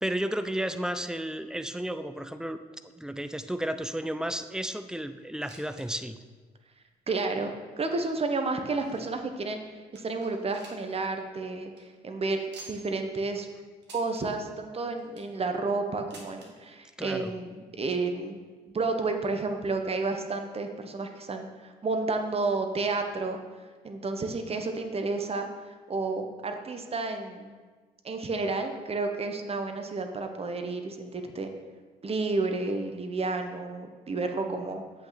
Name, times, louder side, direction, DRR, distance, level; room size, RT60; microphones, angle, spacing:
voice 1, 0.0-2.6 3.0-6.2 17.0-17.3, right 1 dB, 5° right, 10 dB, 0.5 m, -32 dB
sound 1, 5.2-5.9 6.2-6.3 6.9-7.0 7.7-9.2 9.6-9.7 10.0-11.0 11.3-11.4 11.6-11.8 12.5-13.0 13.8-14.2 14.9-15.4 16.1-16.5 17.5-17.6 17.8-17.9 18.7-18.8, right 3 dB, 55° right, 1.8 m, -50 dB
voice 2, 7.1-9.6 9.9-13.5 13.9-18.4 18.7-23.4 23.8-25.5 25.9-27.5 28.0-31.5 32.0-34.8, right 3 dB, 30° right, 5 dB, 1.0 m, -31 dB
7.7 x 5.9 x 4.2 m, 1.4 s
figure-of-eight pair, 45°, 21 cm